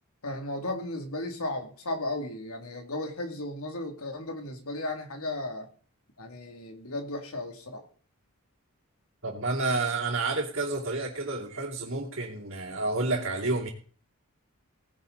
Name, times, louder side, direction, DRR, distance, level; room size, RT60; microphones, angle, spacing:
voice 1, 0.2-5.7 6.2-7.9, left 2 dB, 80° left, 4 dB, 2.6 m, -35 dB
voice 2, 9.2-13.7, right 3 dB, 60° right, -6 dB, 2.8 m, -30 dB
18.0 x 10.5 x 4.0 m, 0.43 s
head